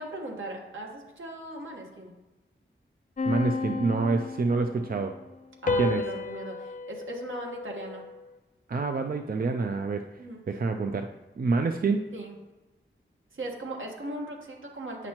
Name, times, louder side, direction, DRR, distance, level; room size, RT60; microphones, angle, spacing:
voice 1, 0.0-2.1 5.6-8.0 10.2-10.4 12.1-12.4 13.3-15.1, right 1 dB, 80° right, 0 dB, 1.4 m, -38 dB
sound 1, 3.2-4.9 5.7-8.3, left 3 dB, 40° left, 0.4 m, -32 dB
voice 2, 3.3-5.2 5.8-6.0 8.7-10.1 10.5-12.0, right 4 dB, 50° right, 5 dB, 0.4 m, -27 dB
8.7 x 5.9 x 2.9 m, 1.1 s
wide cardioid pair, 75°, 20 cm